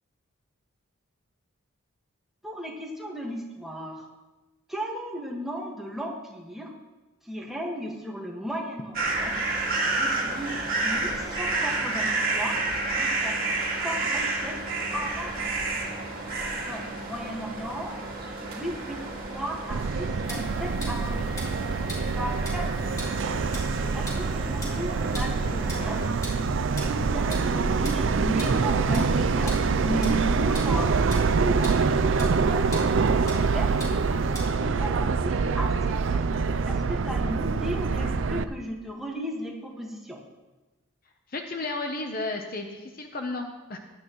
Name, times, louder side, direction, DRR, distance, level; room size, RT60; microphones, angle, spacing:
voice 1, 2.4-4.1 4.7-6.7 7.2-9.4 10.0-12.6 12.9-14.5 14.9-15.5 16.6-17.9 18.4-19.0 19.3-21.3 22.1-23.1 23.9-26.0 26.8-29.5 29.8-31.7 32.2-33.8 34.1-34.2 34.5-36.2 36.7-40.2, equal, ahead, -2 dB, 1.7 m, -35 dB
sound 1, 8.9-26.1, right 2 dB, 45° right, 2.2 m, -31 dB
Subway metro underground, 19.7-38.4, right 4 dB, 60° right, 0.5 m, -25 dB
sound 2, 20.2-34.4, right 1 dB, 15° left, 3.1 m, -43 dB
voice 2, 41.3-43.8, left 2 dB, 40° left, 4 dB, 0.8 m, -33 dB
17.0 x 11.5 x 3.1 m, 1.1 s
head